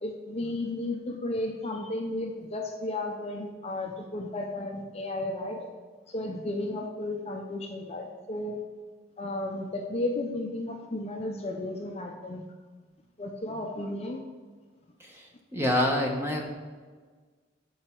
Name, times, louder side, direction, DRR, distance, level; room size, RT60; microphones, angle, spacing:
voice 1, 0.0-5.7 6.1-8.6 9.2-12.4 13.2-14.2, left 2 dB, 30° left, 2 dB, 0.5 m, -33 dB
voice 2, 15.0-16.5, left 1 dB, 10° right, 0 dB, 1.0 m, -27 dB
7.7 x 5.4 x 4.4 m, 1.5 s
head